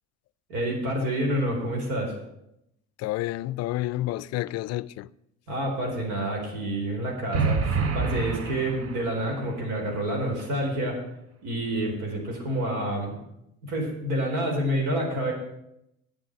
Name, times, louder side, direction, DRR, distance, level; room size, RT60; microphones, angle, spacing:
voice 1, 0.5-2.1 5.5-11.0 11.4-13.2 13.6-15.3, right 1 dB, 65° right, 4.2 m, -28 dB
voice 2, 3.0-5.1, left 16 dB, 55° left, 0.5 m, -29 dB
sound 1, 7.3-9.4, right 5 dB, 45° right, 1.3 m, -27 dB
8.4 x 7.8 x 7.7 m
hypercardioid pair, 75°, 32 cm